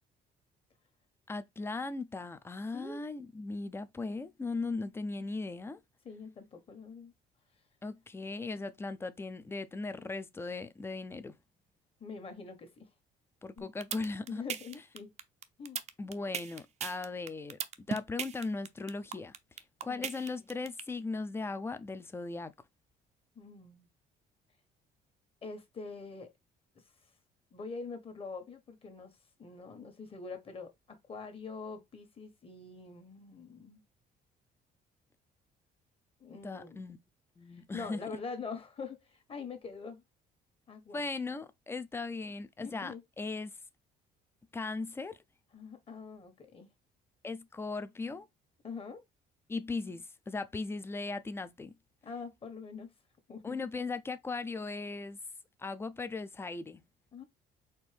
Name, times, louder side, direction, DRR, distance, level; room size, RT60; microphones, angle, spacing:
voice 1, 1.3-5.8 7.8-11.3 13.4-14.4 16.0-17.6 17.9-19.4 19.8-22.5 36.4-37.0 37.4-38.0 40.9-43.5 44.5-45.2 47.2-48.3 49.5-51.7 53.4-55.2 55.6-56.8, left 3 dB, 15° left, 0.5 m, -38 dB
voice 2, 6.0-7.1 12.0-12.9 13.6-13.7 14.3-15.1 15.6-15.8 19.9-20.2 23.3-23.9 25.4-26.3 27.5-29.1 29.4-33.8 36.2-36.8 37.5-40.0 40.7-41.1 42.6-43.0 45.5-46.7 48.6-49.0 52.0-52.9 53.3-53.6 57.1-57.2, left 4 dB, 35° left, 1.3 m, -44 dB
sound 1, 13.6-20.8, right 7 dB, 40° right, 0.6 m, -37 dB
4.4 x 2.7 x 3.3 m
cardioid pair, 110°, 17 cm